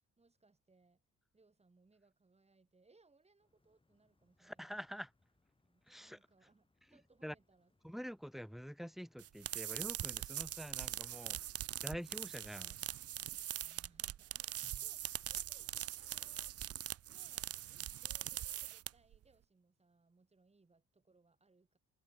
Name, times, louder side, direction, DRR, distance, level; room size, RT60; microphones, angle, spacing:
voice 1, 0.2-1.0 1.3-4.9 5.6-8.0 13.5-16.6 17.0-21.8, right 3 dB, 20° right, 4.5 m, -71 dB
sound 1, 3.4-14.1, left 2 dB, 15° left, 7.9 m, -79 dB
voice 2, 4.4-5.1 5.9-6.2 7.2-7.3 7.8-11.4 11.8-12.8, equal, ahead, 1.0 m, -46 dB
sound 2, 9.2-19.2, right 12 dB, 50° right, 0.6 m, -42 dB
cardioid pair, 90°, 30 cm